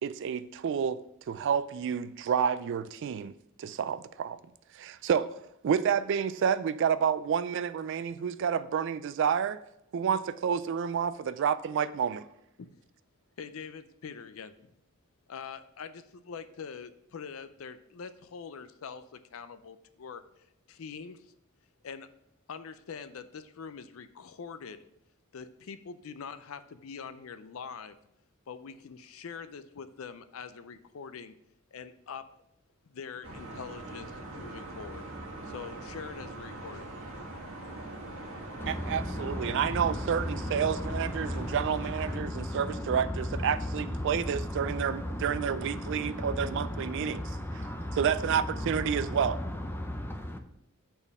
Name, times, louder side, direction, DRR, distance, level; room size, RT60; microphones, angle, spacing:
voice 1, 0.0-3.3 3.6-4.4 4.7-5.4 5.6-9.6 9.9-12.2 38.7-49.4, right 7 dB, 60° right, 0.3 m, -30 dB
voice 2, 13.4-14.7 15.3-20.2 20.7-21.3 21.8-22.1 22.5-24.8 25.3-28.0 28.5-31.3 31.7-32.2 32.8-35.0 35.5-36.9, left 6 dB, 70° left, 0.5 m, -44 dB
sound 1, 33.2-42.2, right 1 dB, 75° right, 1.5 m, -42 dB
voice 3, 38.6-50.4, left 1 dB, 10° left, 0.6 m, -35 dB
5.3 x 4.4 x 5.9 m
head